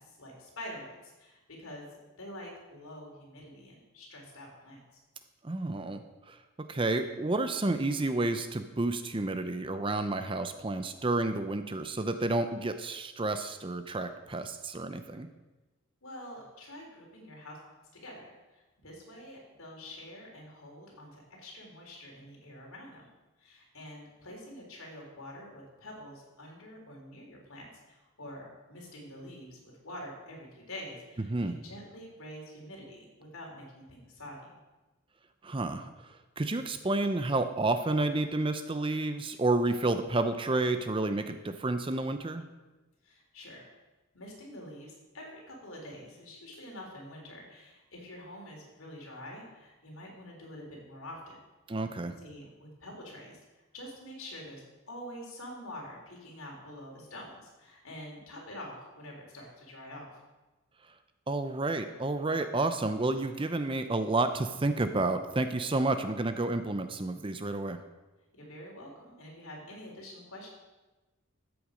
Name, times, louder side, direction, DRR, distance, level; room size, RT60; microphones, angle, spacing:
voice 1, 0.0-4.8 16.0-17.6 18.0-18.2 18.5-23.1 23.4-34.5 43.0-43.7 44.1-51.4 52.2-53.4 53.7-60.2 68.3-70.5, left 1 dB, 75° left, -1 dB, 3.7 m, -46 dB
voice 2, 5.4-6.0 6.3-6.4 6.7-15.3 31.3-31.6 35.4-42.4 51.7-52.1 61.3-67.8, right 2 dB, 25° right, 9 dB, 0.6 m, -30 dB
13.5 x 8.0 x 5.1 m, 1.1 s
head